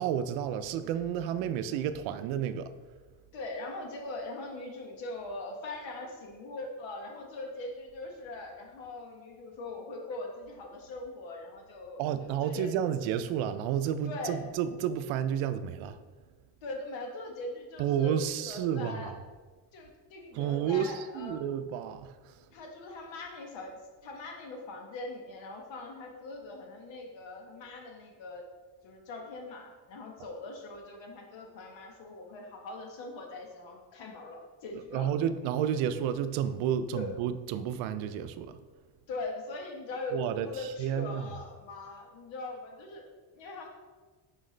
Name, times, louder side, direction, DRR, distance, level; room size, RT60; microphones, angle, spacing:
voice 1, 0.0-2.7 12.0-16.0 17.8-19.1 20.3-22.3 34.9-38.6 40.1-41.3, right 9 dB, 80° right, 11 dB, 0.5 m, -31 dB
voice 2, 3.3-12.1 12.4-12.7 14.0-14.4 16.6-19.1 19.7-21.5 22.5-23.7 24.0-28.4 28.8-35.2 36.9-37.1 39.1-43.0 43.4-43.7, left 2 dB, 70° left, 2 dB, 1.3 m, -41 dB
6.3 x 4.7 x 3.2 m, 1.4 s
cardioid pair, 125°, 46 cm